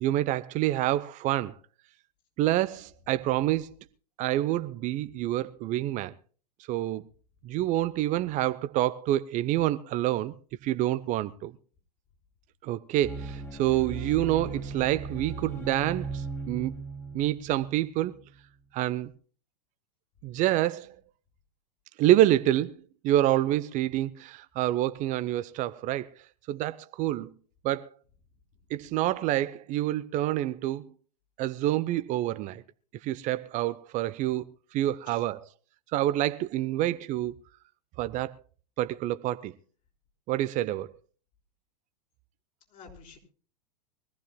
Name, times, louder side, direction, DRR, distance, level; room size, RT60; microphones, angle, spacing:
voice 1, 0.0-1.5 2.4-3.7 4.2-6.1 6.7-7.0 7.4-10.3 10.6-11.5 12.6-16.7 17.1-18.2 18.7-19.1 20.2-21.0 22.0-22.7 23.0-26.1 26.5-27.3 27.6-27.9 28.7-30.9 31.4-32.6 33.0-34.4 34.7-35.4 35.9-37.4 38.0-38.3 38.8-39.5 40.3-40.9, right 14 dB, 40° right, 0.8 m, -27 dB
sound 1, 13.0-18.3, right 4 dB, 10° left, 2.8 m, -38 dB
voice 2, 42.7-43.2, left 5 dB, 40° left, 5.7 m, -51 dB
23.5 x 15.0 x 2.2 m
hypercardioid pair, 100°, 20 cm